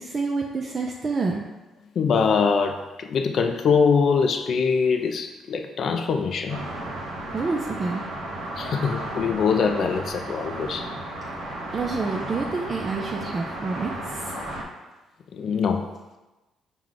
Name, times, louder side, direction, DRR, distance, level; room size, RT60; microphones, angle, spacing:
voice 1, 0.0-1.4 7.3-8.1 11.7-14.3, right 4 dB, 40° right, 0 dB, 0.4 m, -28 dB
voice 2, 2.0-6.7 8.6-10.9 15.3-15.9, left 5 dB, 60° left, 6 dB, 0.3 m, -23 dB
sound 1, 6.5-14.6, right 1 dB, 75° right, 0.9 m, -34 dB
4.7 x 2.2 x 3.8 m, 1.1 s
supercardioid pair, 70°, 0 cm